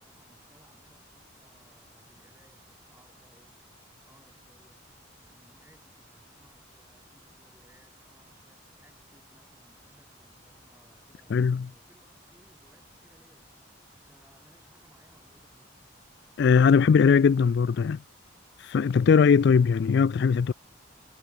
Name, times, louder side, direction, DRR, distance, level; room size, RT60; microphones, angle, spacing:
voice 1, 0.0-3.6 4.1-4.9 5.2-13.7 14.0-15.8, right 1 dB, 10° right, 7.4 m, -63 dB
voice 2, 11.3-11.7 16.4-18.0 18.6-20.5, left 6 dB, 55° left, 0.3 m, -20 dB
head